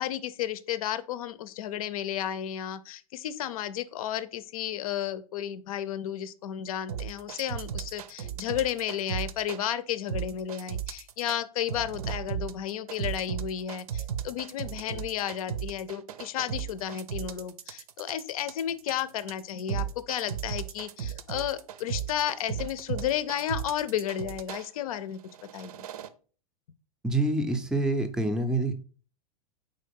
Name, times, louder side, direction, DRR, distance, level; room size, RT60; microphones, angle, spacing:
voice 1, 0.0-25.9, left 10 dB, 70° left, 15 dB, 0.6 m, -33 dB
sound 1, 6.9-9.6 10.1-11.4 11.7-24.7 25.2-26.1, right 8 dB, 80° right, 0.6 m, -35 dB
voice 2, 27.0-28.7, right 2 dB, 5° right, 6 dB, 0.5 m, -26 dB
4.9 x 3.8 x 5.2 m, 0.40 s
supercardioid pair, 165°, 19 cm